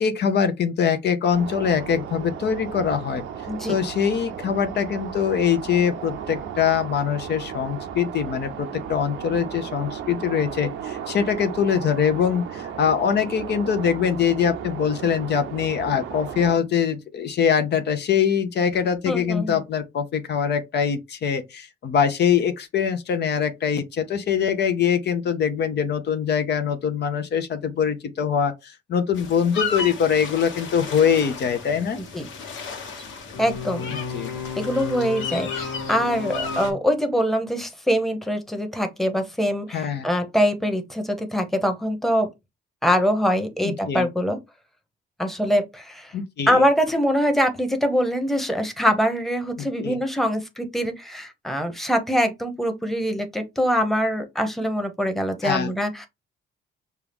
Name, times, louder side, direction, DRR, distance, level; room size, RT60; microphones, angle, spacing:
voice 1, 0.0-3.2 3.7-32.0 33.9-34.3 39.7-40.1 43.6-44.1 46.1-46.6 49.6-50.0 55.4-55.7, left 7 dB, 60° left, 0.7 m, -23 dB
sound 1, 1.3-16.6, right 8 dB, 85° right, 0.6 m, -35 dB
voice 2, 3.5-3.8 19.1-19.6 32.0-32.3 33.4-33.9 34.6-42.3 42.8-44.4 45.2-46.1 46.5-56.1, equal, ahead, 0.9 m, -23 dB
sound 2, 29.1-36.7, left 5 dB, 80° left, 1.3 m, -32 dB
5.5 x 2.4 x 3.4 m
cardioid pair, 90°, 20 cm